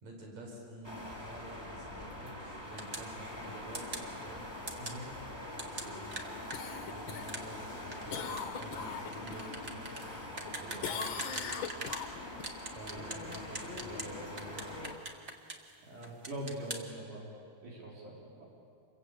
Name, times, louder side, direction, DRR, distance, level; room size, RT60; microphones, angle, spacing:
voice 1, 0.0-4.4 5.6-6.1 6.7-9.8 10.0-11.0 12.7-14.8, right 1 dB, 60° right, 0 dB, 5.8 m, -49 dB
sound 1, 0.8-14.9, left 1 dB, 10° left, 3.1 m, -44 dB
sound 2, 2.8-3.1 3.7-4.1 4.7-5.0 5.6-12.1 12.4-14.1 14.4-15.7 16.0-16.8, right 2 dB, 30° right, 1.3 m, -42 dB
Cough, 6.5-9.5 9.9-10.5 10.8-12.5 16.9-17.0, left 7 dB, 55° left, 1.4 m, -41 dB
voice 2, 15.9-17.3 17.6-18.4, right 1 dB, 75° right, -4 dB, 5.6 m, -42 dB
28.0 x 23.0 x 8.5 m, 2.5 s
omnidirectional pair, 3.7 m